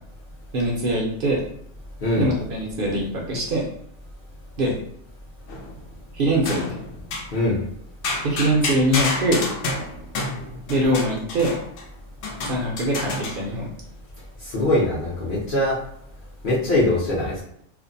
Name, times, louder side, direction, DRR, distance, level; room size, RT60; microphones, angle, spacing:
voice 1, 0.5-1.4 2.2-3.6 4.6-4.7 6.1-6.6 8.2-9.4 10.7-11.6 12.4-13.7, right 1 dB, 55° right, -2 dB, 0.7 m, -22 dB
sound 1, 5.5-5.9 6.5-7.3 8.0-11.8 12.2-13.5, left 2 dB, 85° left, 0.9 m, -29 dB
voice 2, 14.4-15.8 16.4-17.4, left 1 dB, 50° left, -7 dB, 0.8 m, -22 dB
2.5 x 2.0 x 2.6 m, 0.70 s
omnidirectional pair, 1.2 m